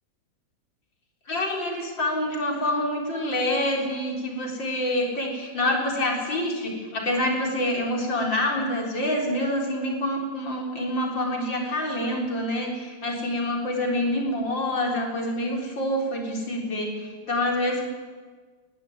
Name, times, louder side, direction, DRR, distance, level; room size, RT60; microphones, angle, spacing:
voice 1, 1.3-17.8, left 1 dB, 75° left, 1 dB, 4.7 m, -27 dB
20.5 x 15.5 x 9.4 m, 1.5 s
omnidirectional pair, 2.0 m